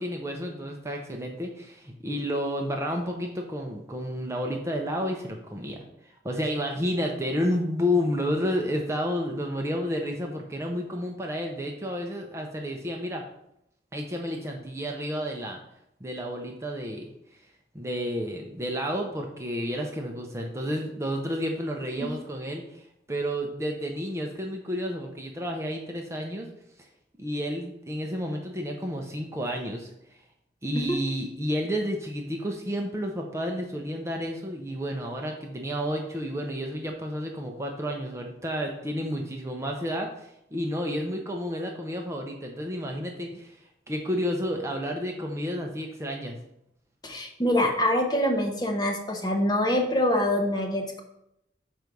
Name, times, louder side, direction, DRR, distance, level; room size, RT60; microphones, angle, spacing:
voice 1, 0.0-5.8 6.2-13.2 13.9-15.6 16.0-17.1 17.7-26.5 27.2-29.9 30.6-43.6 43.9-46.4, equal, 15° right, 2 dB, 0.7 m, -31 dB
voice 2, 47.0-51.0, left 1 dB, 25° left, 2 dB, 1.0 m, -25 dB
6.2 x 4.7 x 5.2 m, 0.80 s
head